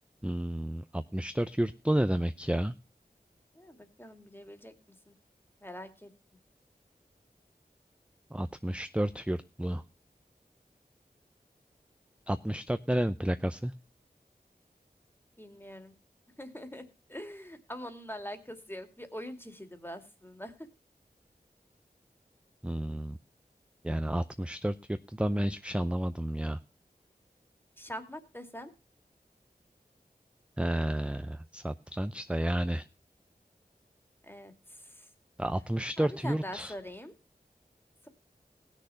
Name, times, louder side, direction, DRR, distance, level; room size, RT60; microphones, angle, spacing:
voice 1, 0.2-2.7 8.3-9.8 12.3-13.7 22.6-23.2 23.8-26.6 30.6-32.8 35.4-36.7, right 1 dB, 5° right, 11 dB, 0.6 m, -31 dB
voice 2, 3.5-4.7 5.1-5.2 5.6-6.1 15.4-15.9 16.4-16.8 17.1-20.5 27.8-28.7 34.2-35.1 36.0-37.1, equal, 15° left, 7 dB, 2.3 m, -43 dB
18.5 x 6.7 x 5.6 m, 0.31 s
wide cardioid pair, 45°, 16 cm